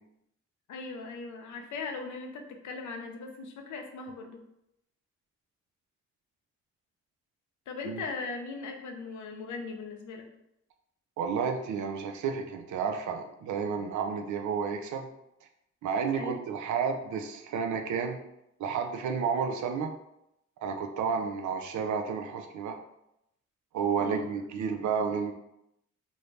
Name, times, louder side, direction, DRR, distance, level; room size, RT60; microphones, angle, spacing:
voice 1, 0.7-4.4 7.7-10.3 16.1-16.4 24.0-24.4, left 4 dB, 70° left, 4 dB, 0.6 m, -39 dB
voice 2, 11.2-15.1 15.8-18.2 18.6-19.9 20.6-22.8 23.7-25.3, right 6 dB, 70° right, 5 dB, 0.5 m, -31 dB
2.6 x 2.1 x 3.1 m, 0.82 s
supercardioid pair, 45°, 31 cm